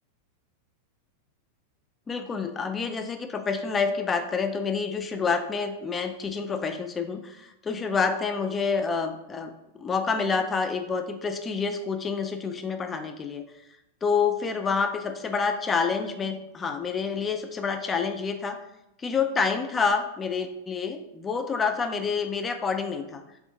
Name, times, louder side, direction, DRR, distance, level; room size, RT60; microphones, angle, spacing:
voice 1, 2.1-9.5 9.8-13.4 14.0-18.6 19.0-23.2, left 5 dB, 20° left, 7 dB, 0.3 m, -28 dB
3.4 x 2.4 x 2.7 m, 0.88 s
figure-of-eight pair, 90°, 0 cm